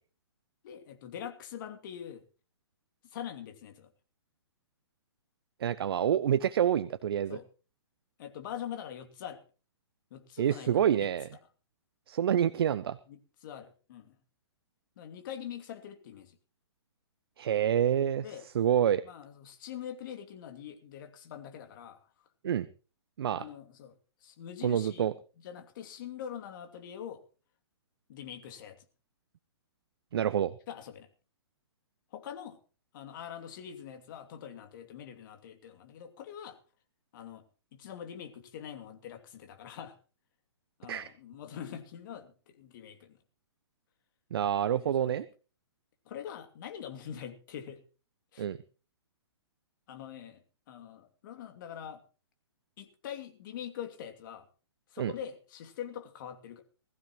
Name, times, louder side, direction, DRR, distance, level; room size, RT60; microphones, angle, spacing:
voice 1, 0.6-2.2 3.0-3.9 7.3-7.4 8.2-9.4 10.1-11.1 13.1-14.2 15.0-16.4 18.2-18.5 19.0-22.1 23.3-25.1 25.4-27.2 28.1-28.9 30.7-31.1 32.1-32.6 32.9-36.6 37.1-37.4 37.7-40.0 40.8-43.2 44.7-45.2 46.0-47.8 48.3-48.5 49.9-50.4 50.7-52.0 52.8-54.5 54.9-56.6, left 9 dB, 50° left, 6 dB, 2.7 m, -44 dB
voice 2, 5.6-7.4 10.4-11.3 12.1-13.0 17.4-18.2 18.5-19.0 22.4-22.7 23.2-23.4 24.6-25.1 30.1-30.5 40.9-41.1 44.3-45.3 48.4-48.6 55.0-55.1, right 9 dB, 60° right, 15 dB, 0.7 m, -27 dB
20.5 x 14.5 x 3.1 m, 0.36 s
hypercardioid pair, 125°, 14 cm